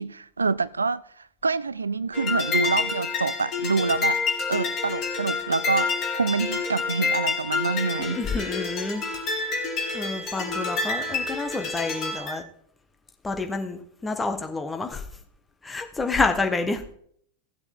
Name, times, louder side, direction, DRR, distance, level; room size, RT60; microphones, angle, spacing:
voice 1, 0.0-4.2 4.5-8.7, right 4 dB, 75° right, 0.3 m, -27 dB
sound 1, 2.1-12.4, left 4 dB, 35° left, 2.5 m, -28 dB
voice 2, 8.0-9.0 9.9-12.4 13.2-15.0 15.6-16.8, left 3 dB, 10° left, 1.4 m, -28 dB
15.5 x 7.8 x 3.6 m
figure-of-eight pair, 90°, 0 cm